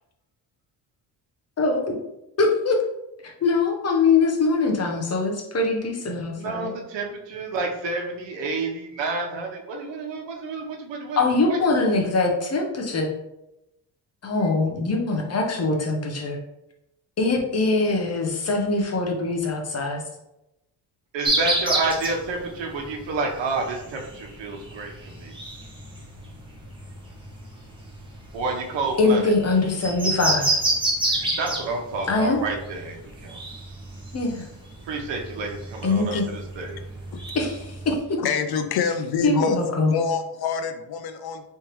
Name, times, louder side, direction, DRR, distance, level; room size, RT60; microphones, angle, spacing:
voice 1, 2.4-2.8 3.2-6.7 11.2-13.1 14.2-16.4 17.2-20.0 29.0-30.6 32.1-32.4 34.1-34.4 35.8-36.3 37.3-38.0 39.2-39.9, left 3 dB, 35° left, 1 dB, 0.9 m, -23 dB
voice 2, 6.4-11.2 11.5-11.6 21.1-25.3 28.3-29.3 31.1-33.4 34.8-36.8, right 3 dB, 75° right, 1 dB, 1.1 m, -29 dB
sound 1, 21.2-38.0, right 1 dB, 10° right, 1.1 m, -30 dB
voice 3, 38.2-39.6 39.9-41.4, left 6 dB, 60° left, 9 dB, 0.5 m, -26 dB
4.5 x 3.4 x 3.0 m, 0.90 s
cardioid pair, 135°, 43 cm